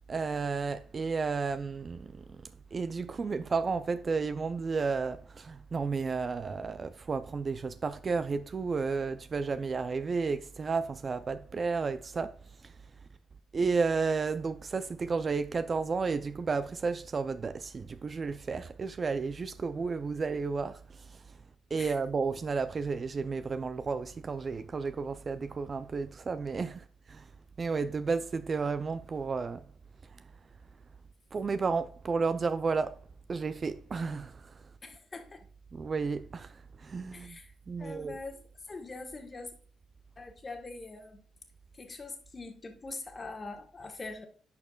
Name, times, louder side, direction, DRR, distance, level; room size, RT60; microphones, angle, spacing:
voice 1, 0.1-12.4 12.6-12.7 13.5-21.2 21.7-27.3 27.6-29.6 31.3-33.0 33.3-34.5 35.7-37.4 37.7-38.2, right 4 dB, 35° right, 0.4 m, -32 dB
voice 2, 34.8-35.4 37.1-37.5 37.8-39.5 40.2-41.2 41.7-44.2, left 3 dB, 30° left, 1.3 m, -43 dB
10.5 x 4.5 x 2.3 m
cardioid pair, 105°, 0 cm